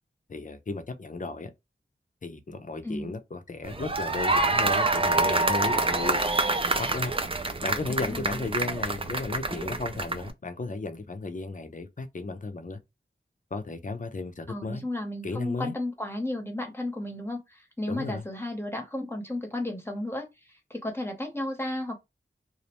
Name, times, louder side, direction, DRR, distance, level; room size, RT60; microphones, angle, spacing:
voice 1, 0.3-1.5 2.2-6.2 6.8-7.1 7.6-12.8 13.5-14.9 15.2-15.7 17.9-18.3, left 3 dB, 40° left, 0.5 m, -34 dB
sound 1, 3.6-10.3, right 2 dB, 25° right, 0.4 m, -26 dB
voice 2, 7.9-8.4 14.5-22.0, left 1 dB, 10° left, 0.8 m, -33 dB
2.5 x 2.0 x 2.9 m
wide cardioid pair, 45°, 20 cm